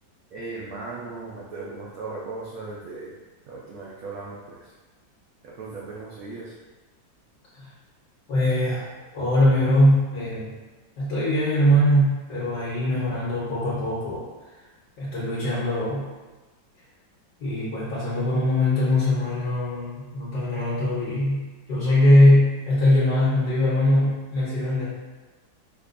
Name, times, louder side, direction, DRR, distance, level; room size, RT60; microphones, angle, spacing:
voice 1, 0.3-3.1 3.5-4.6 5.4-6.5, right 3 dB, 80° right, -5 dB, 0.7 m, -37 dB
voice 2, 8.3-8.9 9.1-10.5 11.0-14.2 15.0-16.1 17.4-24.8, left 1 dB, 60° left, -10 dB, 1.5 m, -21 dB
4.8 x 2.2 x 2.5 m, 1.2 s
omnidirectional pair, 2.1 m